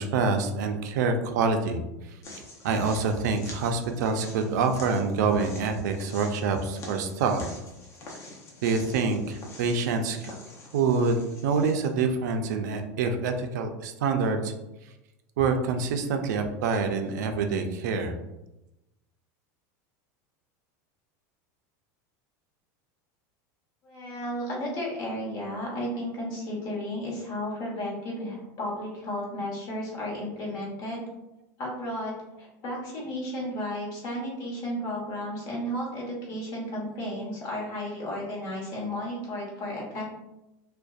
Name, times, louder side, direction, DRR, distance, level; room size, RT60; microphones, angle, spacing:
voice 1, 0.0-1.8 2.6-7.4 8.6-10.4 10.7-14.5 15.4-18.1, right 4 dB, 90° right, 5 dB, 0.4 m, -26 dB
sound 1, 2.2-11.9, left 2 dB, 30° left, 0.5 m, -46 dB
voice 2, 23.8-31.0 31.6-40.0, left 1 dB, 50° left, -3 dB, 1.0 m, -33 dB
2.5 x 2.1 x 2.3 m, 0.93 s
supercardioid pair, 145°, 9 cm